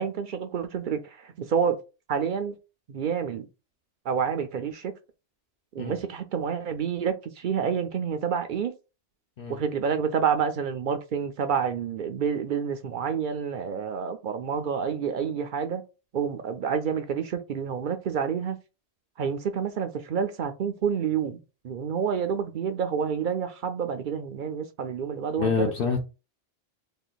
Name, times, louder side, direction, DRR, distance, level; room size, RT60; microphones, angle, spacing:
voice 1, 0.0-1.8 2.1-2.6 2.9-3.4 4.0-4.9 5.7-8.7 9.5-15.8 16.1-18.6 19.2-25.7, right 7 dB, 60° right, 0.6 m, -28 dB
voice 2, 25.4-26.0, left 5 dB, 65° left, 0.9 m, -26 dB
3.1 x 2.4 x 3.9 m
omnidirectional pair, 1.1 m